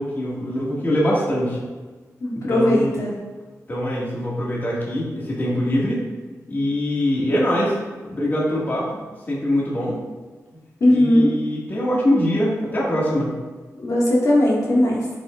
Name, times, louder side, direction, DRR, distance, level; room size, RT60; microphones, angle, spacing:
voice 1, 0.0-1.6 2.4-2.9 3.7-6.0 6.5-7.8 8.0-9.0 9.3-10.0 10.9-13.3, equal, 35° left, -6 dB, 2.0 m, -23 dB
voice 2, 2.2-3.2 10.8-11.3 13.7-15.0, left 1 dB, 70° left, -5 dB, 2.0 m, -18 dB
11.0 x 5.5 x 2.5 m, 1.3 s
wide cardioid pair, 115°, 6 cm